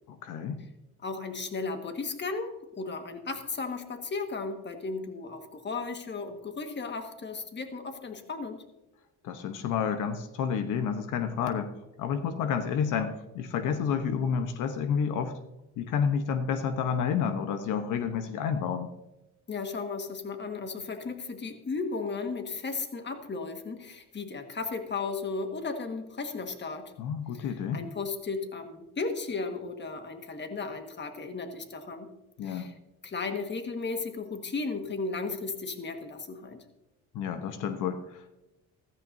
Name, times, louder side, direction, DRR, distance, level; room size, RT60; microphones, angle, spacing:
voice 1, 0.1-0.6 9.2-11.7 12.0-15.3 15.8-18.9 27.0-27.8 32.4-32.7 37.1-38.3, left 7 dB, 90° left, 8 dB, 1.0 m, -30 dB
voice 2, 1.0-8.6 19.5-26.9 27.3-32.1 32.4-32.7 33.0-36.6, left 4 dB, 35° left, 6 dB, 1.6 m, -35 dB
14.5 x 14.0 x 2.7 m, 0.95 s
cardioid pair, 90°, 30 cm